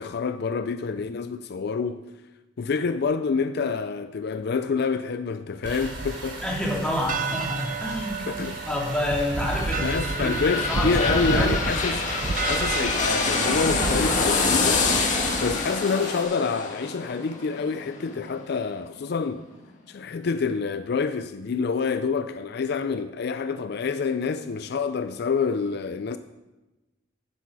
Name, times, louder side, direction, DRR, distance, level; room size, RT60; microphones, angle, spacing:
voice 1, 0.0-2.0 2.6-6.4 8.3-8.6 9.8-12.0 12.5-15.0 15.4-19.5 19.9-26.2, left 5 dB, 55° left, 0.4 m, -27 dB
sound 1, 5.6-15.6, right 3 dB, 45° right, 0.6 m, -31 dB
sound 2, 5.6-16.2, right 2 dB, 65° right, 3.8 m, -40 dB
voice 2, 6.4-11.6, left 1 dB, 5° left, 2.6 m, -29 dB
sound 3, 9.2-18.8 19.2-19.3, left 4 dB, 40° left, 1.9 m, -26 dB
12.0 x 9.9 x 4.8 m
head